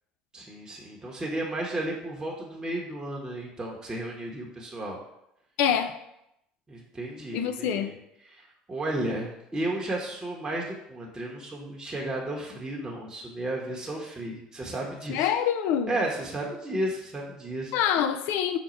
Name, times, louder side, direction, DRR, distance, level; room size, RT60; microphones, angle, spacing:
voice 1, 0.3-5.0 6.7-7.9 8.3-15.3 15.9-17.7, right 1 dB, 20° right, -3 dB, 0.9 m, -33 dB
voice 2, 5.6-5.9 7.3-7.9 15.1-16.0 17.7-18.6, left 9 dB, 70° left, 9 dB, 0.4 m, -25 dB
5.0 x 2.1 x 4.2 m, 0.82 s
hypercardioid pair, 75°, 3 cm